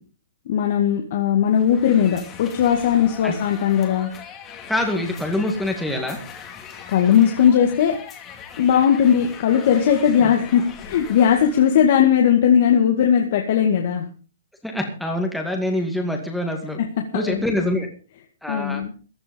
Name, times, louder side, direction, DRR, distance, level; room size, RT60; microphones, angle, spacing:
voice 1, 0.5-4.1 6.9-8.0 8.6-14.1 17.1-17.5 18.5-18.9, left 8 dB, 50° left, 3 dB, 2.1 m, -18 dB
sound 1, 1.5-11.9, left 7 dB, 20° left, 2.5 m, -40 dB
voice 2, 4.7-6.2 10.2-10.3 14.6-16.8 17.1-17.9 18.4-18.8, left 1 dB, ahead, 1 dB, 2.2 m, -25 dB
15.5 x 11.0 x 5.3 m, 0.37 s
hypercardioid pair, 160°, 0 cm